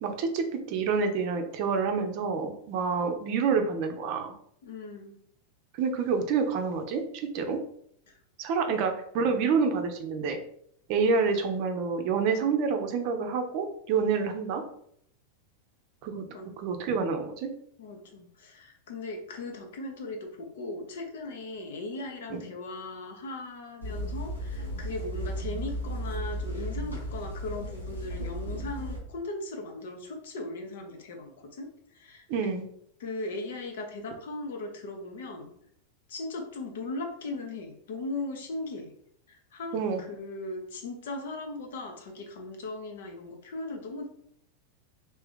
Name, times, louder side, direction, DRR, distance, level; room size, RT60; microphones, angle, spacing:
voice 1, 0.0-4.3 5.7-7.6 8.4-10.4 10.9-14.6 16.0-16.2 16.6-17.5 22.3-22.5 32.3-32.6 39.7-40.0, right 5 dB, 45° right, 5 dB, 0.6 m, -28 dB
voice 2, 4.6-5.2 8.1-8.2 8.7-8.8 16.3-16.5 17.8-31.7 31.9-32.5 33.0-35.5 36.1-38.9 39.3-44.1, left 2 dB, 60° left, 3 dB, 0.8 m, -38 dB
sound 1, 23.8-29.0, equal, 80° left, 1.0 m, -35 dB
3.4 x 2.8 x 3.5 m, 0.66 s
figure-of-eight pair, 90°, 0 cm